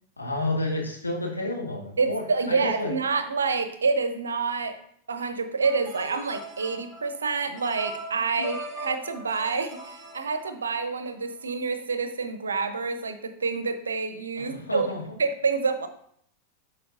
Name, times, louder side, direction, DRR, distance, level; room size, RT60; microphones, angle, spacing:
voice 1, 0.2-2.9 8.4-8.5 14.4-15.0, left 2 dB, 80° left, -1 dB, 1.6 m, -30 dB
voice 2, 2.0-4.8 5.1-14.9 15.2-15.9, right 4 dB, 70° right, 10 dB, 0.7 m, -27 dB
sound 1, 5.6-11.0, right 1 dB, ahead, 1.9 m, -40 dB
11.5 x 4.5 x 2.6 m, 0.68 s
figure-of-eight pair, 90°, 0 cm